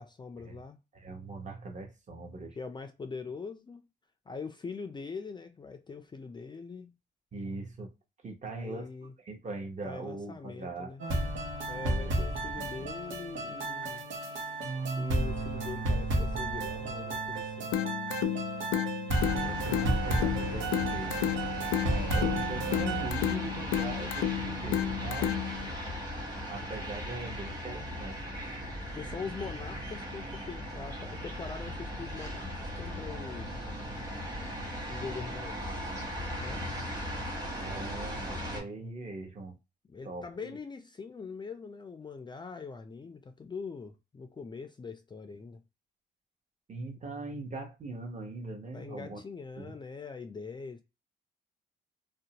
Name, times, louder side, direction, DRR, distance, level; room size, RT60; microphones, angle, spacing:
voice 1, 0.0-0.8 2.6-3.9 4.3-6.9 8.5-9.1 9.8-11.0 11.7-14.0 15.0-17.7 28.9-33.9 34.9-35.9 36.4-36.7 39.8-45.6 48.7-50.8, left 4 dB, 25° left, 0.4 m, -42 dB
voice 2, 0.9-2.6 7.3-7.9 8.2-8.9 9.2-11.0 11.7-12.2 12.6-12.9 19.3-21.3 21.8-25.4 26.5-28.2 37.6-39.5 40.0-40.6 46.7-49.2 49.6-49.8, right 3 dB, 35° right, 0.9 m, -41 dB
sound 1, 11.0-23.1, right 2 dB, 75° right, 0.9 m, -32 dB
sound 2, 17.7-25.7, left 11 dB, 85° left, 0.4 m, -32 dB
sound 3, 19.1-38.6, equal, 20° right, 1.1 m, -38 dB
2.5 x 2.1 x 2.8 m
cardioid pair, 90°, 20 cm